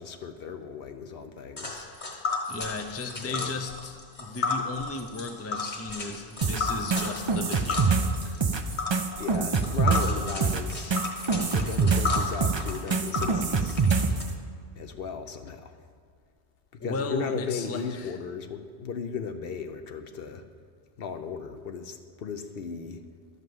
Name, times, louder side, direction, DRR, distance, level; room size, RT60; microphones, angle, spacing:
voice 1, 0.0-1.9 3.0-3.5 9.2-11.0 11.5-13.8 14.8-15.8 16.7-20.4 21.0-23.0, left 6 dB, 65° left, 7 dB, 0.9 m, -36 dB
Tick, 1.6-14.2, left 4 dB, 45° left, 1.6 m, -33 dB
voice 2, 2.5-8.4 16.8-18.2, left 3 dB, 20° left, 6 dB, 0.5 m, -36 dB
sound 1, 6.4-14.2, right 4 dB, 35° right, 0.4 m, -25 dB
12.5 x 5.4 x 7.8 m, 2.1 s
omnidirectional pair, 1.1 m